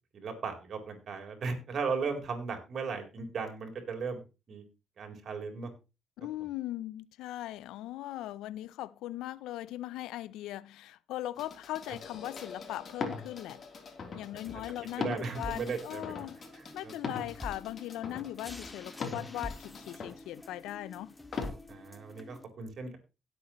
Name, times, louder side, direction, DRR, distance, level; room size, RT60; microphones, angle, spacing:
voice 1, 0.1-4.2 4.5-4.6 5.0-5.7 15.0-16.1 16.5-16.9 21.7-23.0, right 5 dB, 60° right, 4.1 m, -36 dB
voice 2, 6.2-13.6 14.2-16.4 16.7-21.1, left 14 dB, 80° left, 0.5 m, -39 dB
sound 1, 11.4-20.2 21.3-21.5, left 4 dB, 50° left, 3.3 m, -41 dB
sound 2, 14.4-22.4, left 2 dB, 20° left, 2.0 m, -47 dB
17.0 x 8.1 x 3.1 m
hypercardioid pair, 55°, 0 cm